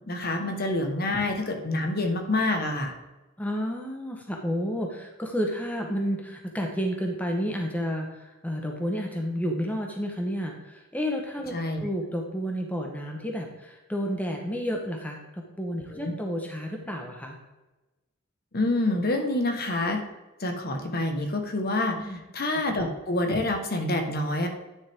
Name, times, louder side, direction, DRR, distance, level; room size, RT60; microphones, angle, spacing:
voice 1, 0.1-2.9 11.5-11.8 15.9-16.1 18.5-20.0 20.4-24.5, left 2 dB, 45° left, 4 dB, 1.2 m, -27 dB
voice 2, 3.4-17.4 22.0-22.2, equal, 5° left, 1 dB, 1.0 m, -31 dB
10.0 x 6.3 x 3.5 m, 1.1 s
head